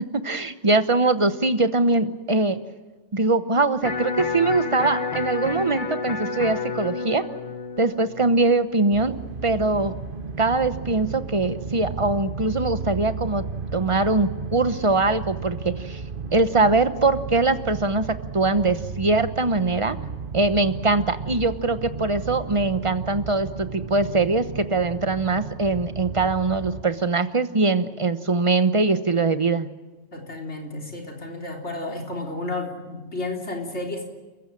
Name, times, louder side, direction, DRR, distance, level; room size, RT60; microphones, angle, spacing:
voice 1, 0.0-2.6 3.1-7.3 7.8-9.9 10.4-13.4 13.7-16.0 16.3-20.0 20.3-29.7, right 3 dB, 30° right, 11 dB, 1.0 m, -22 dB
Electric guitar, 3.8-9.9, left 4 dB, 45° left, 1.2 m, -31 dB
sound 1, 8.9-26.8, right 5 dB, 50° right, 1.2 m, -34 dB
voice 2, 30.1-34.0, left 2 dB, 65° left, 1 dB, 4.0 m, -32 dB
30.0 x 15.0 x 8.9 m, 1.2 s
omnidirectional pair, 1.2 m